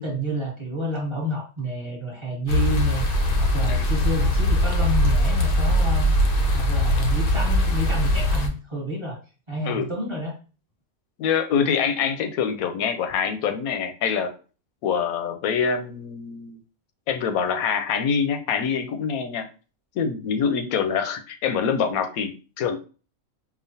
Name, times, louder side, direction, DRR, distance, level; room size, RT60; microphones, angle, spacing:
voice 1, 0.0-6.1 6.5-9.2 9.5-10.3, equal, 20° right, -2 dB, 1.2 m, -29 dB
sound 1, 2.5-8.5, left 1 dB, 55° left, 0.7 m, -21 dB
voice 2, 11.2-14.3 14.8-16.6 17.1-19.4 20.0-22.8, left 6 dB, 90° left, 8 dB, 1.0 m, -25 dB
5.0 x 2.3 x 2.7 m, 0.36 s
omnidirectional pair, 1.5 m